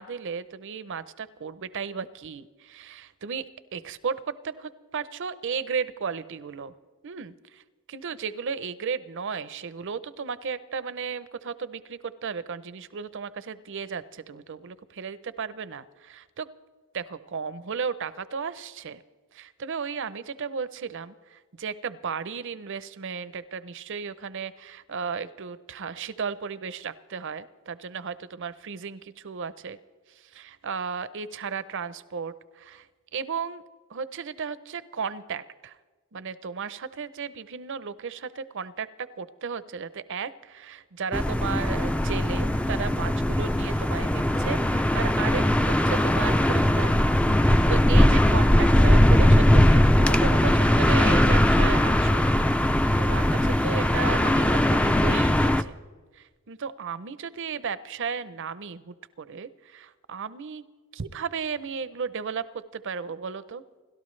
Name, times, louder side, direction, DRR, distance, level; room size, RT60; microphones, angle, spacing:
voice 1, 0.0-6.7 7.0-7.6 7.9-16.5 16.9-19.0 19.3-29.8 30.1-32.9 33.1-33.6 33.9-35.8 36.1-46.9 47.4-52.3 53.0-55.8 56.1-60.7 60.9-62.5 62.7-63.6, right 6 dB, 60° right, 15 dB, 0.6 m, -34 dB
sound 1, 41.1-55.6, left 1 dB, 5° left, 0.4 m, -20 dB
29.0 x 12.5 x 3.2 m, 1.4 s
head